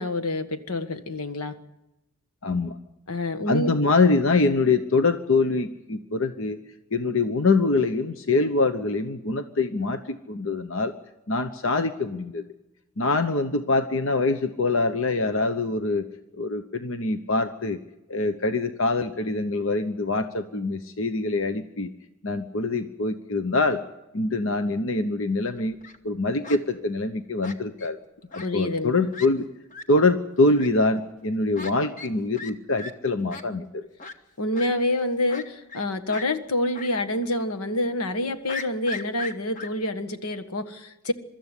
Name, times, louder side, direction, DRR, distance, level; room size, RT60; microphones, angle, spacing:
voice 1, 0.0-1.5 3.1-3.7 28.4-29.0 34.4-41.1, left 1 dB, 90° left, 9 dB, 1.5 m, -27 dB
voice 2, 2.4-2.8 3.5-6.6 6.9-10.9 11.3-12.4 13.0-16.1 16.4-17.8 18.1-21.9 22.2-23.8 24.1-25.8 26.0-28.0 28.3-29.5 29.9-33.8, left 3 dB, 65° left, 9 dB, 1.0 m, -24 dB
Fowl, 25.6-26.0 26.4-26.6 27.4-27.9 28.3-28.5 28.8-28.9 29.1-29.3 29.7-29.8 30.5-30.7 31.5-31.7 32.0-32.1 32.4-32.5 32.8-32.9 33.3-33.4 34.0-34.1 34.5-34.7 35.3-35.8 36.1-36.3 36.7-36.9 37.2-37.3 38.5-39.7, left 3 dB, 35° left, 1.2 m, -37 dB
23.5 x 13.0 x 9.9 m, 0.94 s
head